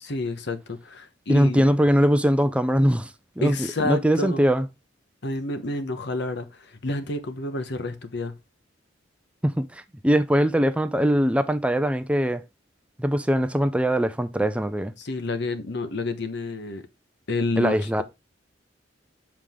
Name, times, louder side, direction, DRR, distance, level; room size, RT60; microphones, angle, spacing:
voice 1, 0.0-1.6 3.4-4.5 5.2-8.3 15.0-16.8 17.3-18.0, left 2 dB, 65° left, 1.1 m, -29 dB
voice 2, 1.3-3.1 3.4-3.6 3.8-4.7 9.4-12.4 13.0-14.9 17.6-18.0, equal, 5° right, 0.5 m, -21 dB
7.6 x 4.9 x 3.6 m
head